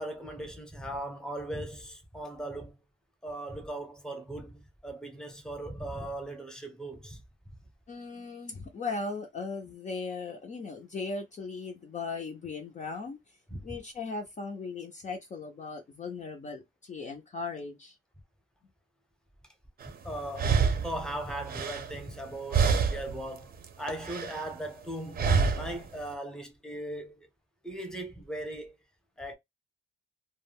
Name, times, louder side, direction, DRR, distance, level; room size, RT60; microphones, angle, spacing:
voice 1, 0.0-2.8 3.2-7.2 13.5-13.6 20.0-27.3 27.6-28.8 29.2-29.3, right 1 dB, 5° left, 0.7 m, -38 dB
voice 2, 7.9-13.4 13.6-18.0, left 4 dB, 35° left, 0.5 m, -38 dB
sound 1, 19.8-19.9 20.3-22.3 22.5-23.2 23.5-24.5 25.2-25.8, right 5 dB, 45° right, 0.6 m, -27 dB
2.2 x 2.1 x 3.3 m
cardioid pair, 130°, 21 cm